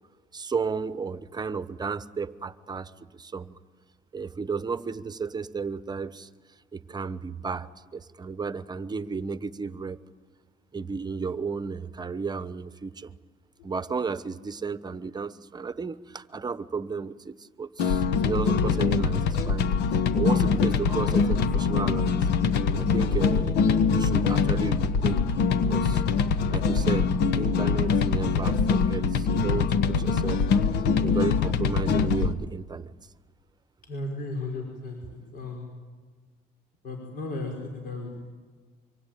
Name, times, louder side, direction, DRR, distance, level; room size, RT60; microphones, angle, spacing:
voice 1, 0.3-3.6 4.1-6.3 6.7-10.0 10.7-13.1 13.6-22.3 22.7-23.6 23.9-25.3 25.7-26.0 26.5-30.4 31.0-32.9, right 5 dB, 25° right, 14 dB, 1.0 m, -33 dB
sound 1, 17.8-32.3, left 5 dB, 85° left, 1.3 m, -23 dB
voice 2, 33.8-35.7 36.8-38.2, left 2 dB, 60° left, 1 dB, 5.2 m, -35 dB
25.5 x 24.5 x 9.2 m, 1.4 s
cardioid pair, 110°, 17 cm